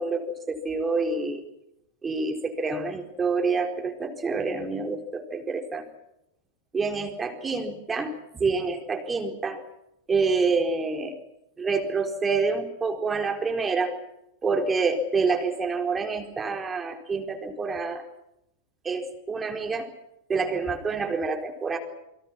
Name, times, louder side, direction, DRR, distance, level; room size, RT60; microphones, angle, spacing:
voice 1, 0.0-1.4 2.0-5.9 6.7-9.6 10.1-11.2 11.6-13.9 14.4-18.0 18.8-19.9 20.3-21.8, right 4 dB, 15° right, 4 dB, 4.3 m, -27 dB
29.0 x 24.0 x 6.1 m, 0.83 s
figure-of-eight pair, 90°, 0 cm